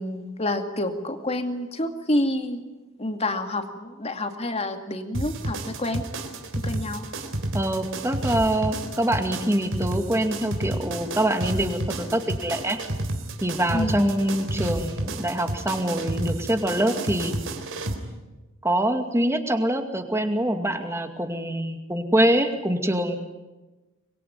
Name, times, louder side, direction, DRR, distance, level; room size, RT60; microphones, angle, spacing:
voice 1, 0.0-2.6 3.0-6.0 6.6-7.0 13.7-14.1, left 1 dB, 30° left, 6 dB, 2.4 m, -28 dB
sound 1, 5.1-17.9, right 1 dB, 60° right, 3.7 m, -30 dB
voice 2, 7.5-12.8 13.4-17.3 18.6-23.2, right 1 dB, 10° right, 6 dB, 2.4 m, -24 dB
25.5 x 22.0 x 9.5 m, 1.2 s
head